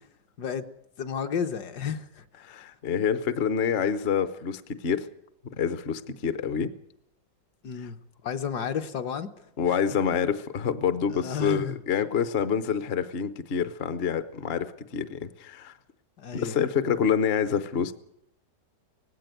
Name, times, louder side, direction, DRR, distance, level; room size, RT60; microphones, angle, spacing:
voice 1, 1.0-2.2 7.6-8.0 8.2-9.3 9.7-9.8 11.1-11.8 16.2-16.6, left 7 dB, 65° left, 7 dB, 1.5 m, -31 dB
voice 2, 2.4-5.1 5.4-6.7 7.8-7.9 9.6-15.7 16.3-17.9, left 7 dB, 45° left, 12 dB, 0.8 m, -27 dB
18.5 x 16.0 x 9.1 m, 0.76 s
omnidirectional pair, 2.0 m